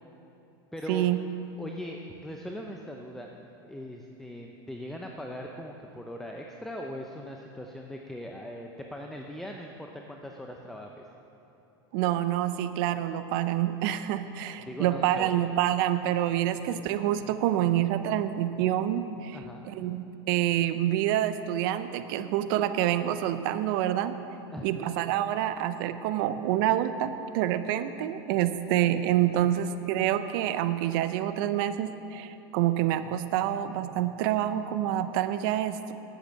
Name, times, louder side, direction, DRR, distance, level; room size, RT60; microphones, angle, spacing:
voice 1, 0.7-1.1 1.6-3.3 3.7-11.0 14.6-15.3 19.3-19.6 24.5-24.6, equal, ahead, 1 dB, 0.7 m, -40 dB
voice 2, 11.9-19.4 19.6-24.2 24.6-35.9, right 12 dB, 60° right, 11 dB, 0.7 m, -27 dB
10.5 x 8.1 x 7.7 m, 2.9 s
supercardioid pair, 120°, 13 cm